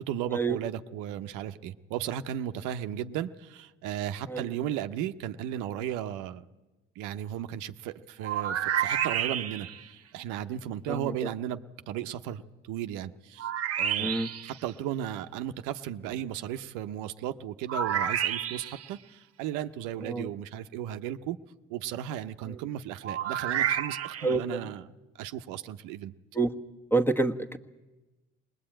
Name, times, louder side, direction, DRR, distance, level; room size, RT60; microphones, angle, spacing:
voice 1, 0.0-6.5 7.0-13.5 13.8-14.1 14.4-21.4 21.7-26.1, right 11 dB, 90° right, 10 dB, 0.7 m, -35 dB
sound 1, 8.2-9.9 13.4-14.6 17.7-18.9 23.0-24.4, right 9 dB, 55° right, 1.0 m, -30 dB
voice 2, 26.9-27.6, right 3 dB, 5° left, 8 dB, 1.4 m, -27 dB
20.5 x 20.0 x 8.8 m, 1.1 s
supercardioid pair, 70°, 30 cm